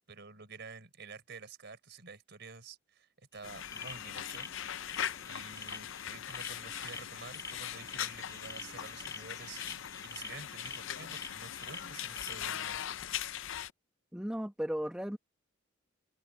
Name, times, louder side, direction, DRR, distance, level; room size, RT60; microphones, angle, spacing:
voice 1, 0.1-4.5 5.2-12.8, right 4 dB, 60° right, 4.4 m, -50 dB
sound 1, 3.3-12.6, left 3 dB, 15° left, 1.6 m, -48 dB
sound 2, 3.4-13.7, left 10 dB, 70° left, 0.6 m, -40 dB
voice 2, 14.1-15.2, equal, 5° right, 1.1 m, -35 dB
open air
head